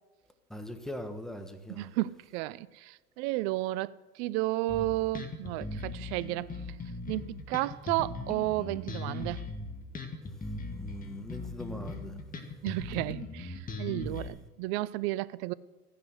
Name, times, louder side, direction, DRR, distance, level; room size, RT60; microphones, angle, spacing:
voice 1, 0.5-1.9 10.7-12.2, equal, ahead, 1.5 m, -41 dB
voice 2, 1.7-6.5 7.1-9.4 12.6-15.5, right 17 dB, 45° right, 0.6 m, -32 dB
Bass guitar, 4.7-14.3, left 2 dB, 20° left, 2.1 m, -39 dB
15.0 x 10.5 x 7.9 m
hypercardioid pair, 100°, 45 cm